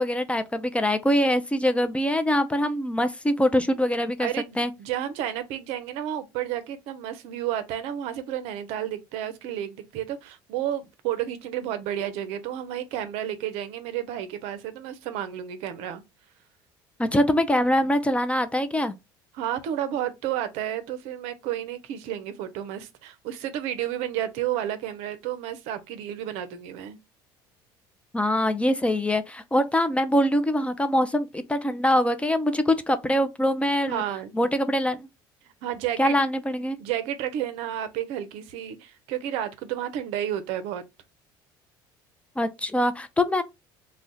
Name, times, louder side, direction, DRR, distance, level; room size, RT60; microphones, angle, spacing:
voice 1, 0.0-4.3 4.6-4.7 17.0-18.9 28.1-34.0 34.3-35.1 36.0-36.8 42.4-43.4, left 1 dB, 10° left, 0.4 m, -23 dB
voice 2, 4.2-16.0 19.3-27.0 33.9-34.3 35.6-36.2 36.8-40.8, right 11 dB, 70° right, 0.5 m, -31 dB
2.3 x 2.1 x 3.8 m
hypercardioid pair, 75°, 11 cm